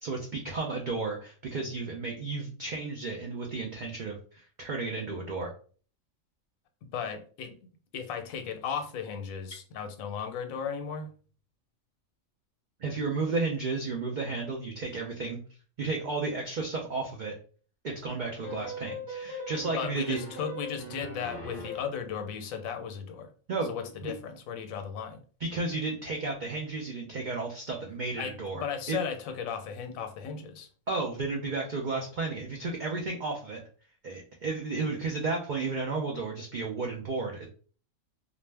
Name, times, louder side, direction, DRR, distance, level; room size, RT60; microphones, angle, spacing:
voice 1, 0.0-5.5 12.8-15.4 15.8-17.3 17.8-20.2 23.5-23.7 24.0-24.1 25.4-29.0 30.9-33.6 34.0-37.5, right 3 dB, 85° right, 0 dB, 0.4 m, -33 dB
voice 2, 6.9-7.5 7.9-11.1 19.7-23.3 23.7-25.2 28.2-30.7, left 7 dB, 80° left, 6 dB, 1.0 m, -36 dB
sound 1, 18.4-22.0, left 1 dB, 45° right, 0.9 m, -40 dB
2.4 x 2.0 x 3.2 m, 0.41 s
omnidirectional pair, 1.4 m